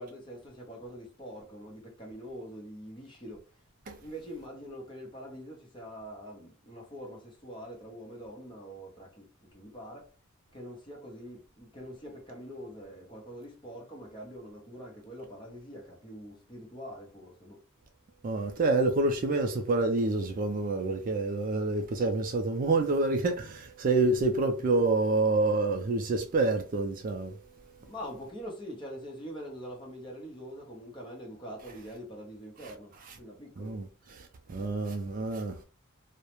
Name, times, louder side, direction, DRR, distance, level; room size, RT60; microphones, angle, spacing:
voice 1, 0.0-3.5 4.0-10.1 10.5-17.6 27.8-33.8, equal, 20° left, 0.8 m, -44 dB
voice 2, 18.2-27.4 33.6-35.6, right 3 dB, 40° right, 0.3 m, -28 dB
2.3 x 2.0 x 2.9 m
head